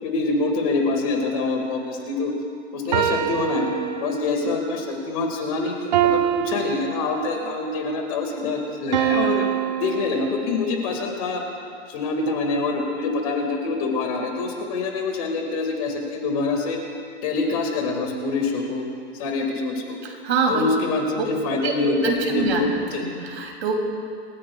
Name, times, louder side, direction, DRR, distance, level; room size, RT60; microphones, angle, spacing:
voice 1, 0.0-2.3 2.7-3.7 4.0-9.4 9.8-11.4 11.9-16.8 17.2-18.8 19.1-20.0 20.5-23.1, left 3 dB, 30° left, 2 dB, 1.9 m, -25 dB
sound 1, 2.9-4.5 5.9-7.6 8.9-10.8, right 11 dB, 40° right, 0.7 m, -25 dB
voice 2, 20.0-20.6 21.2-21.3 21.6-22.6 23.0-23.7, right 5 dB, 70° right, 1 dB, 2.9 m, -25 dB
27.5 x 13.5 x 2.3 m, 2.4 s
hypercardioid pair, 175°, 33 cm